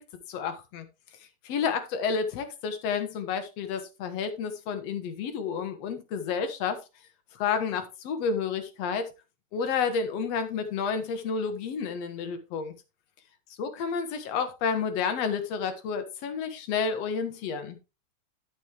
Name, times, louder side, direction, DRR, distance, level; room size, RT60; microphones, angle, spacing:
voice 1, 0.3-0.9 1.4-6.8 7.3-9.1 9.5-12.7 13.6-17.8, left 6 dB, 60° left, 2.3 m, -30 dB
12.5 x 6.2 x 3.4 m
omnidirectional pair, 3.5 m